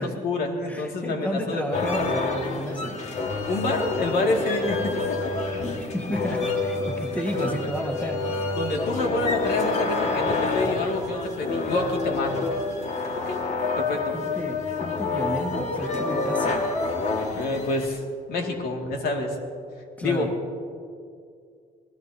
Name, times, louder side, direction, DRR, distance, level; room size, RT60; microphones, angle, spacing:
voice 1, 0.0-1.9 3.5-5.0 8.6-12.5 13.1-13.4 13.8-14.1 17.3-18.0 18.3-19.4 20.0-20.3, left 3 dB, 65° left, 1 dB, 2.2 m, -27 dB
voice 2, 0.7-3.0 5.8-8.2 13.9-16.6 20.0-20.3, equal, 10° left, 3 dB, 1.5 m, -32 dB
sound 1, 1.7-17.9, left 3 dB, 40° left, 1.7 m, -28 dB
25.5 x 18.0 x 2.8 m, 2.3 s
cardioid pair, 110°, 17 cm